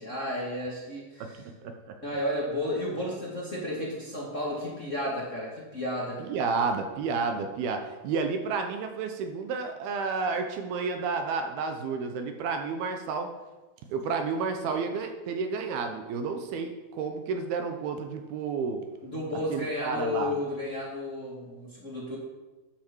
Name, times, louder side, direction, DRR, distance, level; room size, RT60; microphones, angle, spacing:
voice 1, 0.0-1.4 2.0-6.2 19.0-22.2, left 1 dB, 25° left, -5 dB, 2.2 m, -32 dB
voice 2, 1.6-2.0 6.2-13.3 13.9-18.8 19.5-20.4, right 5 dB, 75° right, 5 dB, 2.8 m, -31 dB
13.0 x 10.0 x 4.6 m, 1.2 s
omnidirectional pair, 4.7 m